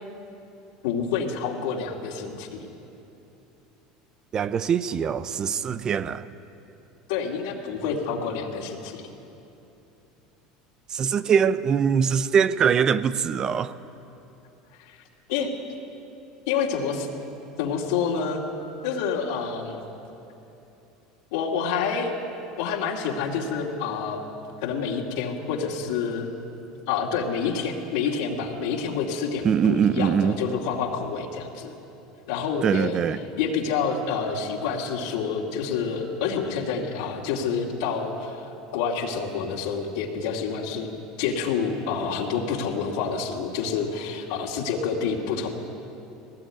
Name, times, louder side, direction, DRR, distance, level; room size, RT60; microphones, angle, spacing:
voice 1, 0.8-2.7 7.1-9.0 14.8-15.0 15.3-15.5 16.5-17.1 17.6-18.4 18.8-19.8 21.3-22.1 22.6-24.2 24.6-26.3 26.9-31.7 32.3-33.0 33.4-38.5 38.7-40.9 41.2-45.5, left 6 dB, 80° left, -2 dB, 2.6 m, -28 dB
voice 2, 4.3-6.3 10.9-13.7 29.4-30.4 32.6-33.2, right 7 dB, 35° right, 15 dB, 0.7 m, -22 dB
19.0 x 17.5 x 9.1 m, 2.9 s
supercardioid pair, 120°, 2 cm